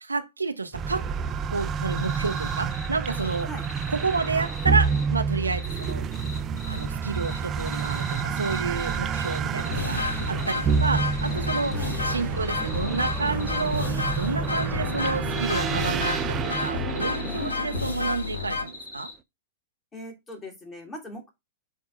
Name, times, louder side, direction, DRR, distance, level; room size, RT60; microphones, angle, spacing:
voice 1, 0.0-1.0 1.5-3.5 3.9-6.1 6.7-10.0 10.3-11.8 12.0-19.1, right 4 dB, 80° right, 0.7 m, -30 dB
sound 1, 0.7-18.7, right 6 dB, 25° right, 0.5 m, -29 dB
sound 2, 1.9-5.0 5.4-6.8 7.1-12.2 12.5-19.1, left 3 dB, 50° left, 2.6 m, -42 dB
sound 3, 8.9-9.0 9.6-18.6, left 4 dB, 75° left, 1.2 m, -31 dB
voice 2, 17.4-17.8 19.9-21.3, left 1 dB, 15° left, 1.9 m, -40 dB
7.4 x 2.7 x 4.9 m
figure-of-eight pair, 100°, 0 cm